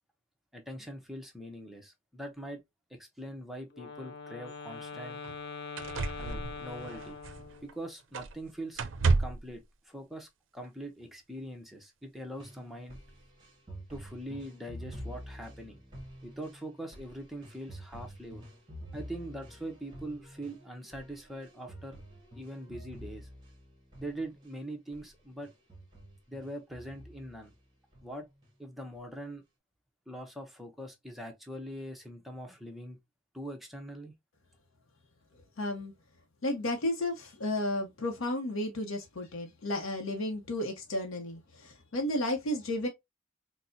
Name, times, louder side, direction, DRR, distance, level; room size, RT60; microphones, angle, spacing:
voice 1, 0.5-2.6 2.9-5.2 6.2-7.2 7.6-8.8 9.2-13.0 13.9-15.8 16.2-18.4 18.9-22.0 22.4-23.3 24.0-25.5 26.3-27.5 28.0-28.3 28.6-29.4 30.1-33.0 33.3-34.1, right 1 dB, ahead, 0.7 m, -42 dB
Wind instrument woodwind instrument, 3.7-7.8, left 4 dB, 55° left, 0.5 m, -43 dB
sound 1, 4.5-4.6 5.2-5.4 5.8-7.7 8.1-8.4 8.7-9.5 10.6-10.7, right 3 dB, 65° right, 0.5 m, -31 dB
sound 2, 12.3-24.6 24.9-25.1 25.4-27.5 27.9-28.5 28.9-29.0, equal, 20° right, 1.0 m, -48 dB
voice 2, 35.6-35.9 36.4-42.9, left 1 dB, 90° left, 0.7 m, -33 dB
4.2 x 2.0 x 2.5 m
head